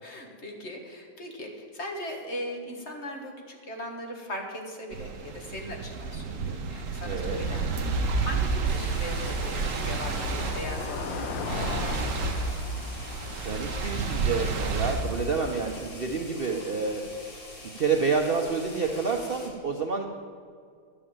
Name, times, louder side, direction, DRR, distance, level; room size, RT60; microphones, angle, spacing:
voice 1, 0.0-12.0, equal, 35° left, 1 dB, 1.7 m, -39 dB
sound 1, 4.9-15.8, right 4 dB, 50° right, 1.1 m, -30 dB
Car passing by / Engine, 6.3-16.9, left 4 dB, 75° left, 1.6 m, -40 dB
voice 2, 7.0-7.4 13.4-17.0 17.7-20.1, right 4 dB, 80° right, 2 dB, 0.5 m, -28 dB
sound 2, 8.6-19.5, left 1 dB, 55° left, 3.1 m, -45 dB
11.5 x 7.0 x 8.7 m, 2.1 s
omnidirectional pair, 2.1 m